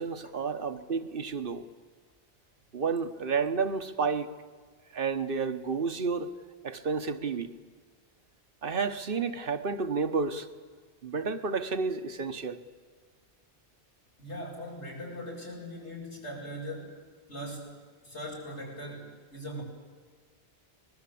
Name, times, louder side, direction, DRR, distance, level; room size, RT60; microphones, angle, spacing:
voice 1, 0.0-1.7 2.7-4.3 4.9-6.3 6.6-7.5 8.6-10.5 11.0-12.6, right 5 dB, 55° right, 1.4 m, -31 dB
voice 2, 14.2-17.0 17.3-17.8 18.0-19.6, equal, 90° left, 7.5 m, -40 dB
24.5 x 21.0 x 8.6 m
omnidirectional pair, 1.1 m